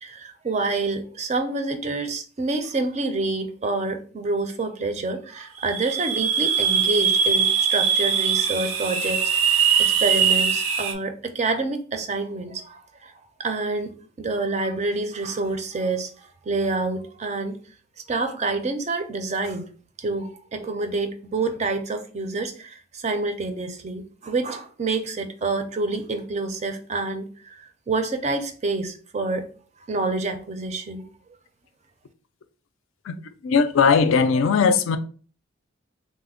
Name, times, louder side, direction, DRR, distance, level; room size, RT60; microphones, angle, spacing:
voice 1, 0.0-13.1 13.4-17.6 18.1-19.7 20.0-29.5 29.9-31.1, right 3 dB, 35° right, 0.4 m, -28 dB
sound 1, 5.6-10.9, right 7 dB, 75° right, 0.6 m, -21 dB
voice 2, 33.4-35.0, left 5 dB, 70° left, 0.3 m, -19 dB
3.2 x 2.1 x 3.6 m
head